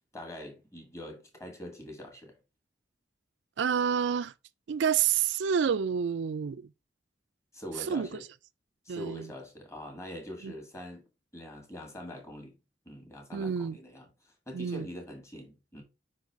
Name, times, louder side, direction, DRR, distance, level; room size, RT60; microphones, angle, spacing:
voice 1, 0.1-2.4 7.5-8.3 8.9-11.0 11.3-12.6 12.9-15.8, left 1 dB, 15° left, 1.8 m, -44 dB
voice 2, 3.6-4.3 4.7-6.7 7.9-8.1 8.9-9.3 10.4-10.5 13.3-13.8 14.5-14.9, right 7 dB, 80° right, 0.4 m, -28 dB
5.2 x 4.1 x 4.5 m
head